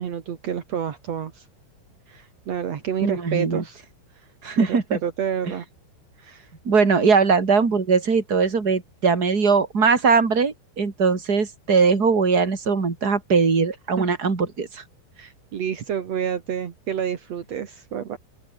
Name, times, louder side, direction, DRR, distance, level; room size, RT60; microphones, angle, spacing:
voice 1, 0.0-1.4 2.1-3.8 4.6-5.6 6.2-6.5 13.9-14.0 15.2-18.2, right 8 dB, 70° right, 1.6 m, -29 dB
voice 2, 3.0-3.6 4.4-5.0 6.6-14.8, right 5 dB, 25° right, 2.8 m, -20 dB
open air
omnidirectional pair, 6.0 m